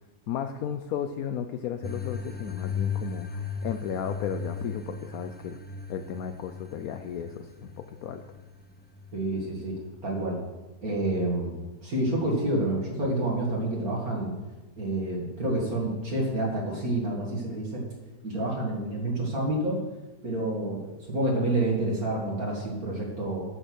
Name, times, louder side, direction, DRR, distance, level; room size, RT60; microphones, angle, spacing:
voice 1, 0.3-5.6 5.9-7.7 8.0-8.2, left 9 dB, 70° left, 7 dB, 1.0 m, -34 dB
sound 1, 1.8-9.9, left 5 dB, 15° left, 0.3 m, -36 dB
voice 2, 9.1-9.8 10.0-10.4 10.8-14.3 14.8-17.8 18.2-19.8 20.2-23.4, right 1 dB, 60° right, -3 dB, 2.4 m, -28 dB
10.0 x 7.8 x 6.2 m, 1.1 s
omnidirectional pair, 1.8 m